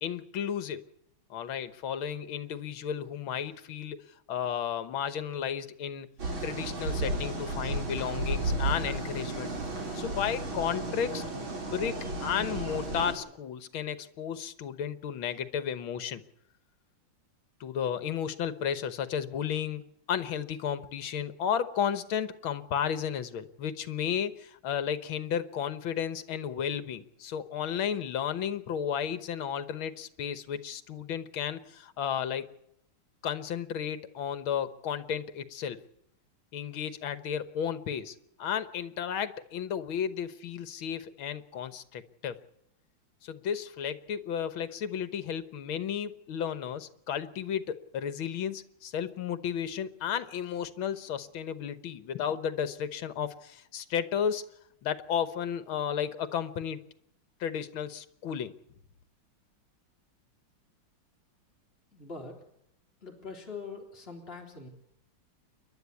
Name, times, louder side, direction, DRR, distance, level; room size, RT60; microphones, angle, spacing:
voice 1, 0.0-0.9 1.3-6.1 6.4-9.5 9.9-16.2 17.6-19.8 20.1-32.5 33.2-35.8 36.5-42.4 43.2-54.5 54.8-56.8 57.4-58.5, left 8 dB, 75° left, 13 dB, 1.9 m, -33 dB
sound 1, 6.2-13.1, right 2 dB, 70° right, 4.9 m, -33 dB
voice 2, 61.9-62.4 63.0-64.7, left 4 dB, 30° left, 0 dB, 3.5 m, -43 dB
29.0 x 11.5 x 8.4 m, 0.79 s
omnidirectional pair, 2.3 m